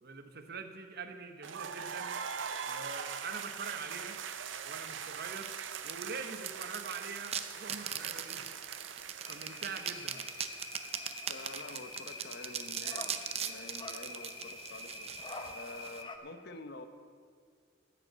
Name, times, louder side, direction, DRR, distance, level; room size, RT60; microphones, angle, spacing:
voice 1, 0.0-2.2 2.7-4.2 4.6-5.6 5.8-8.5 9.3-10.3, right 4 dB, 55° right, 7 dB, 1.0 m, -44 dB
sound 1, 1.4-11.2, right 7 dB, 70° right, 0.6 m, -42 dB
sound 2, 4.1-16.0, right 8 dB, 30° right, 0.6 m, -41 dB
sound 3, 9.2-16.2, left 2 dB, 25° left, 0.8 m, -46 dB
voice 2, 11.3-16.8, left 2 dB, 55° left, 8 dB, 0.9 m, -48 dB
15.0 x 6.7 x 7.8 m, 2.1 s
head